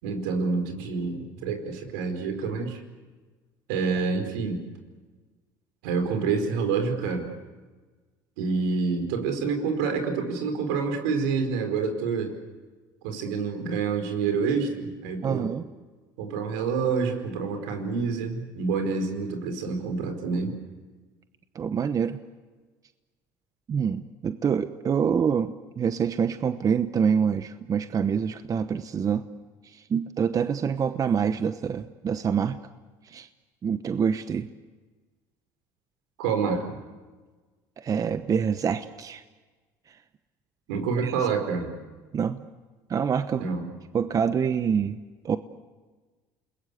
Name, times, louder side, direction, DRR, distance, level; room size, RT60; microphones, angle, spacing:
voice 1, 0.0-2.8 3.7-4.6 5.8-7.3 8.4-12.3 13.0-15.4 16.2-20.5 36.2-36.6 40.7-41.8 43.4-43.6, right 5 dB, 85° right, 5 dB, 4.7 m, -27 dB
voice 2, 15.2-15.7 21.5-22.2 23.7-29.2 29.6-32.6 33.1-33.3 33.6-34.5 37.8-39.2 41.0-41.1 42.1-42.5 42.9-43.5 43.9-45.0 45.2-45.4, right 7 dB, 40° right, 11 dB, 1.0 m, -26 dB
29.0 x 21.0 x 8.4 m, 1.3 s
supercardioid pair, 85°, 10 cm